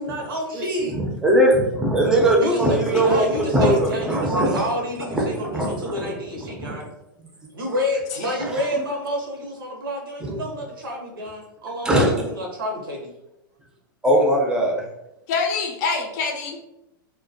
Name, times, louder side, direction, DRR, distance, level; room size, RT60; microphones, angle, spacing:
voice 1, 0.0-1.0 2.4-6.9 7.5-13.1, left 1 dB, 80° right, 0 dB, 0.7 m, -29 dB
voice 2, 1.0-4.6 5.1-6.1 6.4-6.8 8.5-8.6 10.2-10.3 11.8-12.1 14.0-14.8, right 1 dB, 5° right, -1 dB, 0.5 m, -20 dB
voice 3, 15.3-16.6, left 4 dB, 50° left, 2 dB, 0.5 m, -25 dB
2.2 x 2.1 x 2.6 m, 0.90 s
hypercardioid pair, 105°, 11 cm